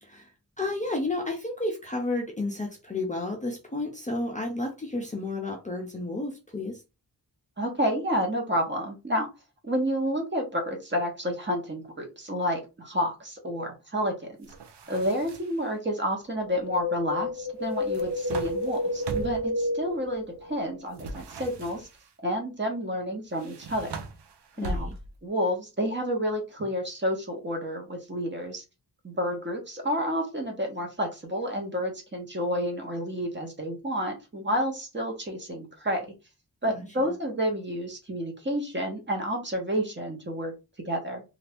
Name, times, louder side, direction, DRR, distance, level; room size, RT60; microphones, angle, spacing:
voice 1, 0.0-0.3 0.6-6.8 24.6-24.9 36.7-37.1, left 2 dB, 20° left, 0.6 m, -32 dB
voice 2, 7.6-9.3 9.6-14.5 14.9-21.9 22.2-24.0 24.6-24.9 25.2-28.6 29.0-36.1 36.6-40.5 40.8-41.2, equal, 25° right, 0.9 m, -30 dB
sound 1, 14.4-15.7 17.7-19.5 20.9-22.1 23.3-25.3, right 2 dB, 90° right, 0.6 m, -39 dB
Wind, 16.4-20.8 21.0-21.1, left 2 dB, 70° right, 1.3 m, -30 dB
2.7 x 2.5 x 3.4 m
wide cardioid pair, 120°, 40 cm